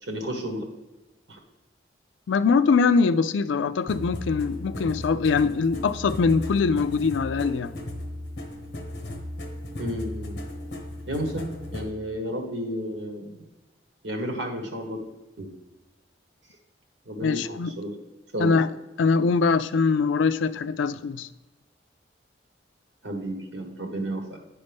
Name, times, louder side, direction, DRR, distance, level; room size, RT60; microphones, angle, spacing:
voice 1, 0.0-0.6 1.3-1.4 9.8-10.4 11.1-13.5 14.0-15.0 15.4-15.5 17.0-17.9 18.3-18.6 23.0-24.4, equal, 75° right, 1.5 m, -32 dB
voice 2, 2.3-7.7 17.2-17.7 18.4-18.7 19.0-21.3, left 4 dB, 85° left, 0.4 m, -22 dB
sound 1, 3.9-11.9, left 1 dB, 60° left, 1.0 m, -36 dB
9.6 x 5.3 x 3.5 m
head